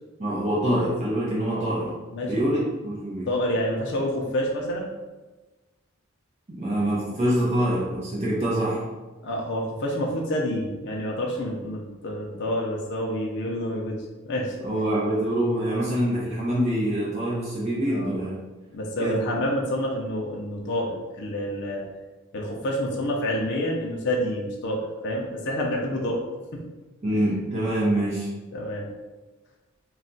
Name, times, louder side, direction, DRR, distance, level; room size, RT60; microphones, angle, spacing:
voice 1, 0.2-1.9 2.2-3.3 6.5-8.8 14.6-18.4 19.0-19.2 27.0-28.3, right 1 dB, 30° right, -7 dB, 0.5 m, -25 dB
voice 2, 2.1-2.5 3.3-4.9 9.2-14.0 14.2-14.6 17.9-18.2 18.7-21.8 22.3-26.2 28.5-28.9, equal, 50° left, -1 dB, 0.4 m, -28 dB
2.3 x 2.1 x 3.8 m, 1.2 s
head